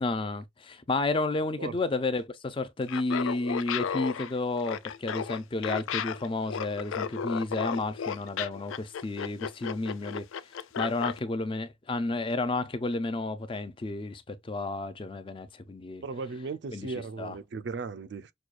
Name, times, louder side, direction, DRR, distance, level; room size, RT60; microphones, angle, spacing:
voice 1, 0.0-10.2 10.8-16.0 16.7-16.9 17.2-17.3, left 2 dB, 25° left, 0.4 m, -31 dB
Laughter, 2.8-11.2, left 7 dB, 90° left, 0.4 m, -34 dB
voice 2, 16.0-18.3, right 4 dB, 60° right, 0.4 m, -36 dB
6.1 x 2.3 x 2.4 m
head